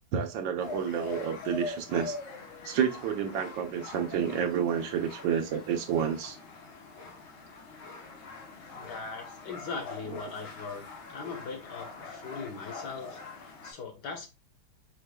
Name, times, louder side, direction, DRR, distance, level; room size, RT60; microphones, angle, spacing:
voice 1, 0.1-2.2 2.6-6.4, right 8 dB, 75° right, 1.4 m, -29 dB
sound 1, 0.6-13.7, left 4 dB, 90° left, 1.9 m, -43 dB
voice 2, 8.7-14.3, left 4 dB, 60° left, 1.6 m, -40 dB
5.0 x 4.6 x 2.2 m
omnidirectional pair, 2.1 m